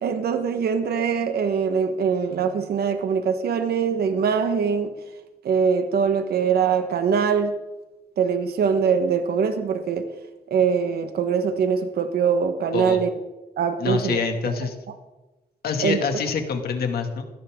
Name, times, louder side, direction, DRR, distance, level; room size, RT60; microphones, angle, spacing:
voice 1, 0.0-4.9 5.4-7.5 8.2-10.1 10.5-13.1 13.6-14.2 15.8-16.0, right 6 dB, 75° right, 7 dB, 1.4 m, -22 dB
voice 2, 12.7-13.0 13.8-14.7 15.6-17.2, left 5 dB, 70° left, 4 dB, 2.4 m, -26 dB
21.0 x 17.0 x 3.8 m, 1.1 s
wide cardioid pair, 180°, 16 cm